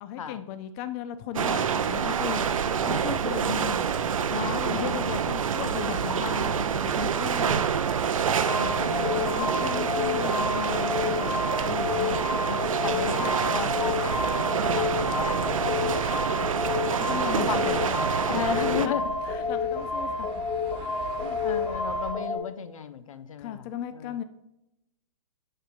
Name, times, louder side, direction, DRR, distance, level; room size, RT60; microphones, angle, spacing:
voice 1, 0.0-2.5 2.9-3.7 4.3-7.6 9.0-11.3 11.6-12.2 17.0-18.0 18.3-18.4 18.8-19.0 19.3-20.3 20.7-20.9 23.4-24.2, left 10 dB, 30° left, 11 dB, 0.4 m, -36 dB
sound 1, 1.3-18.9, right 7 dB, 75° right, 0.6 m, -27 dB
voice 2, 3.4-3.9 4.7-5.2 8.5-9.7 12.4-16.0 17.3-17.9 18.3-19.2 21.2-23.7 23.9-24.1, left 7 dB, 75° left, 13 dB, 0.6 m, -35 dB
sound 2, 8.4-22.4, left 4 dB, 10° left, 1.6 m, -30 dB
sound 3, 15.4-22.1, right 4 dB, 30° right, 1.1 m, -44 dB
6.4 x 6.2 x 2.6 m, 0.86 s
hypercardioid pair, 125°, 17 cm